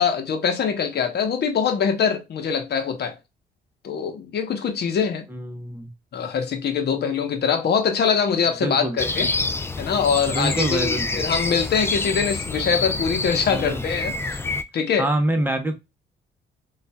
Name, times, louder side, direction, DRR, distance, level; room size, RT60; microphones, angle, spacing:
voice 1, 0.0-3.1 3.8-5.2 6.1-9.3 9.8-14.2 14.7-15.1, left 6 dB, 55° left, 0.9 m, -23 dB
voice 2, 5.3-5.9 8.6-9.0 10.3-11.2 13.5-13.8 15.0-15.7, right 1 dB, 10° right, 0.9 m, -25 dB
sound 1, 9.0-14.6, left 3 dB, 10° left, 0.4 m, -27 dB
3.9 x 2.5 x 2.2 m
cardioid pair, 90°, 20 cm